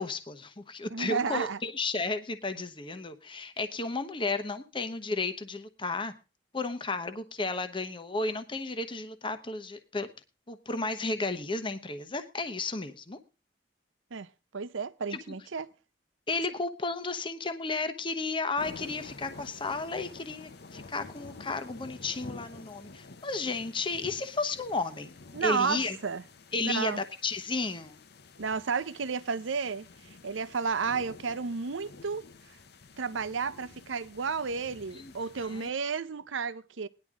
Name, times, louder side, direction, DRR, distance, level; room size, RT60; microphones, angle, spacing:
voice 1, 0.0-6.1 6.5-10.1 10.5-13.2 15.1-15.2 16.3-25.1 25.4-26.0 26.5-28.0 34.9-35.1 35.4-35.7, left 3 dB, 25° left, 0.9 m, -33 dB
voice 2, 0.9-1.6 14.1-14.3 14.5-15.7 25.3-26.2 26.6-27.0 28.4-29.9 30.2-32.3 33.0-36.9, right 5 dB, 80° right, 0.7 m, -32 dB
sound 1, 18.6-35.7, left 3 dB, 55° left, 0.9 m, -50 dB
18.0 x 11.0 x 3.7 m
head